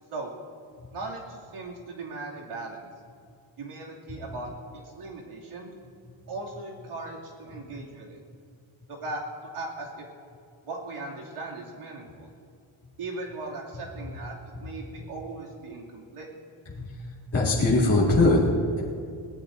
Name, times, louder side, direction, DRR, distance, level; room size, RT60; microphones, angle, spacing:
voice 1, 0.9-2.9 3.6-5.7 6.3-8.2 8.9-10.1 10.6-12.3 13.0-16.3, right 2 dB, 90° right, -3 dB, 2.7 m, -38 dB
voice 2, 16.7-18.8, left 2 dB, 30° left, -7 dB, 2.0 m, -22 dB
22.5 x 17.0 x 2.6 m, 2.2 s
wide cardioid pair, 175°, 49 cm